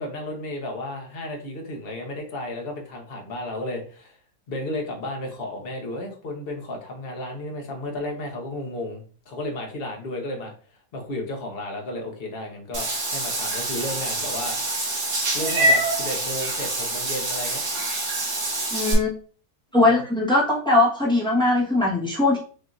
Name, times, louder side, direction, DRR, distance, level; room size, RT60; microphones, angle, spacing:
voice 1, 0.0-4.2 4.5-10.5 10.9-14.6 15.3-17.6 19.8-19.9, left 1 dB, 40° left, 2 dB, 0.9 m, -33 dB
Meow / Water / Bathtub (filling or washing), 12.7-18.9, right 1 dB, 60° right, 1.7 m, -25 dB
voice 2, 18.7-19.1 19.7-22.4, left 2 dB, 5° left, -4 dB, 0.9 m, -20 dB
5.9 x 2.7 x 2.4 m, 0.40 s
omnidirectional pair, 1.9 m